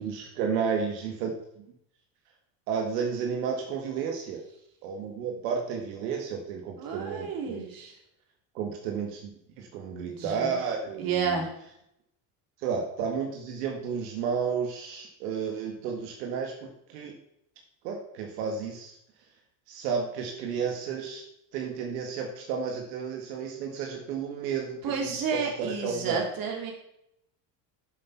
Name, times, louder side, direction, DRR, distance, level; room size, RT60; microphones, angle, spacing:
voice 1, 0.0-1.6 2.7-4.4 4.8-7.6 8.5-11.5 12.6-17.1 17.8-19.0 19.7-21.2 21.5-26.3, right 6 dB, 85° right, 2 dB, 1.9 m, -32 dB
voice 2, 6.8-7.9 10.0-10.5 11.0-11.5 24.8-26.7, right 5 dB, 45° right, 1 dB, 3.0 m, -31 dB
8.3 x 7.1 x 5.8 m, 0.77 s
supercardioid pair, 130°, 47 cm